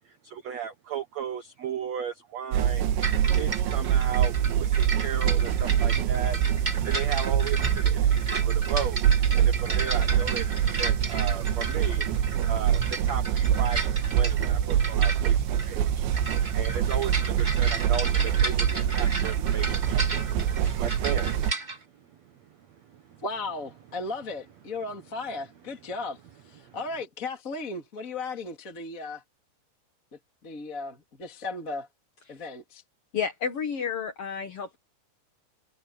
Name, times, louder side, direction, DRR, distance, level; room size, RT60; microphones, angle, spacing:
voice 1, 0.0-2.8 3.3-6.4 6.8-9.0 9.4-12.1 12.5-16.1 16.5-20.0 20.5-21.3 22.2-22.4 22.9-23.2 26.6-26.8, right 8 dB, 70° right, 1.6 m, -36 dB
sound 1, 2.5-21.5, right 9 dB, 90° right, 3.9 m, -25 dB
sound 2, 3.0-21.8, right 3 dB, 15° right, 1.4 m, -34 dB
voice 2, 23.2-26.2 26.5-29.2 30.4-31.9 32.3-32.8, left 3 dB, 25° left, 2.1 m, -35 dB
voice 3, 33.1-34.8, left 6 dB, 80° left, 1.3 m, -31 dB
omnidirectional pair, 5.1 m